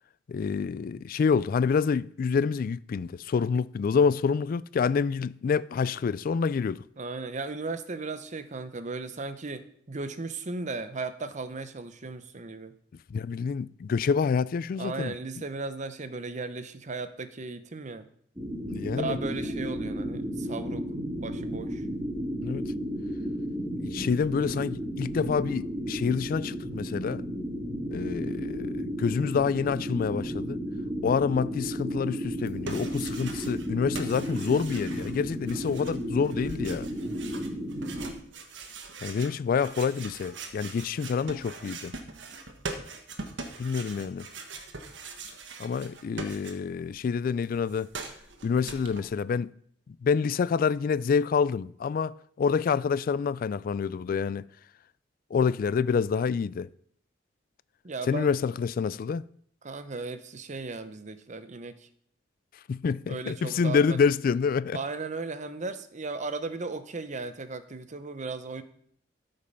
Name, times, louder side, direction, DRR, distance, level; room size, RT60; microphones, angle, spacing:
voice 1, 0.3-6.8 13.1-15.1 18.7-19.2 22.4-22.7 23.8-27.2 27.9-30.6 31.0-36.9 39.0-41.9 43.6-44.3 45.6-47.9 48.4-49.5 50.0-54.4 55.3-56.7 58.1-59.2 62.7-64.8, left 5 dB, 50° left, 0.3 m, -27 dB
voice 2, 7.0-12.7 14.8-18.1 18.8-20.9 21.2-21.8 57.8-58.3 59.6-61.8 63.1-64.0 64.7-68.6, right 3 dB, 40° right, 0.8 m, -36 dB
sound 1, 18.4-38.1, equal, 15° right, 1.7 m, -33 dB
sound 2, 32.3-33.7 33.9-46.9 47.2-49.0, right 3 dB, 85° right, 1.3 m, -42 dB
13.0 x 5.3 x 5.4 m
head